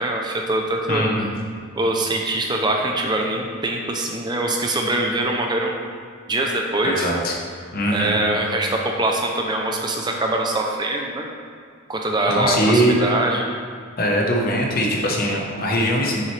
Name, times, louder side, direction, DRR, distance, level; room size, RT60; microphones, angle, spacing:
voice 1, 0.0-1.1 1.8-5.8 6.3-7.1 7.9-11.3 11.9-13.5, right 1 dB, 20° right, 1 dB, 0.6 m, -23 dB
voice 2, 0.9-1.3 6.8-7.3 7.7-8.2 12.3-12.9 14.0-16.2, equal, 45° left, 0 dB, 1.1 m, -21 dB
7.2 x 6.6 x 3.3 m, 2.1 s
head